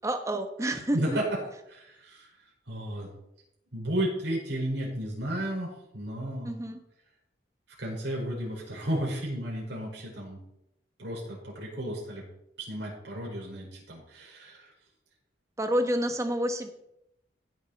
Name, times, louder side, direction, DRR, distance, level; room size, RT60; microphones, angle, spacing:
voice 1, 0.0-1.2 6.4-6.8 15.6-16.7, right 1 dB, 15° right, 6 dB, 1.2 m, -29 dB
voice 2, 0.9-1.2 1.7-2.3 2.7-3.1 3.7-6.5 7.8-10.4 11.0-12.2 12.6-14.7, right 1 dB, 75° right, -3 dB, 5.2 m, -33 dB
16.0 x 7.4 x 4.2 m, 0.81 s
head